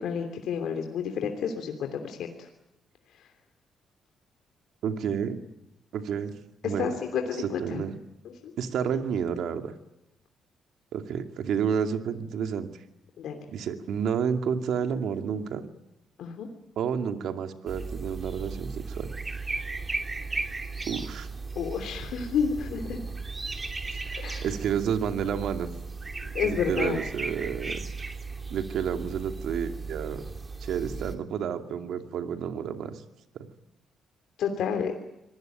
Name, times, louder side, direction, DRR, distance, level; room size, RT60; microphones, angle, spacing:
voice 1, 0.0-2.5 3.1-3.3 6.6-7.8 8.2-8.5 13.2-13.5 16.2-16.5 21.5-23.2 24.2-24.5 26.2-27.0 34.4-35.0, left 7 dB, 75° left, 4 dB, 3.1 m, -30 dB
voice 2, 4.8-5.4 5.9-6.4 6.6-6.9 7.6-7.9 8.6-9.7 10.9-12.7 13.5-15.6 16.8-19.1 20.9-21.3 23.9-25.7 26.4-27.8 28.5-30.2 30.6-33.0 33.3-33.5, right 7 dB, 75° right, 6 dB, 2.5 m, -30 dB
sound 1, 17.7-31.2, right 3 dB, 25° right, 2.9 m, -36 dB
26.0 x 18.5 x 9.3 m, 0.89 s
cardioid pair, 90°, 0 cm